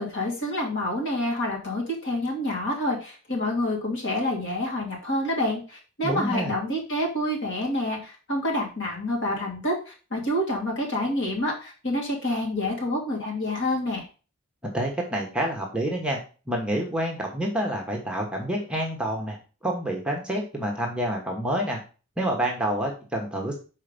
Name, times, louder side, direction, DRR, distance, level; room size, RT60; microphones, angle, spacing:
voice 1, 0.0-14.0, left 1 dB, 55° left, -2 dB, 2.6 m, -28 dB
voice 2, 6.0-6.5 14.6-16.2 16.5-19.4 19.6-21.8 22.2-23.5, right 1 dB, 5° right, 0 dB, 1.2 m, -28 dB
5.6 x 4.4 x 5.2 m, 0.35 s
head